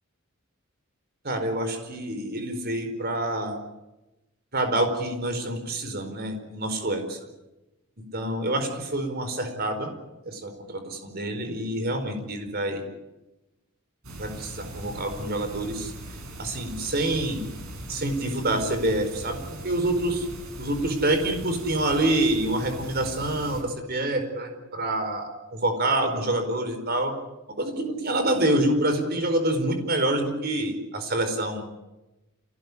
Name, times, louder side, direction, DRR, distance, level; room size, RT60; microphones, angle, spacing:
voice 1, 1.2-3.6 4.5-7.2 8.1-9.9 10.2-12.9 14.1-15.9 16.4-17.4 17.9-20.3 20.6-27.1 27.6-31.8, right 1 dB, 45° right, 7 dB, 4.7 m, -27 dB
sound 1, 14.0-23.6, right 1 dB, 85° right, 6.5 m, -40 dB
27.0 x 18.0 x 9.9 m, 1.0 s
head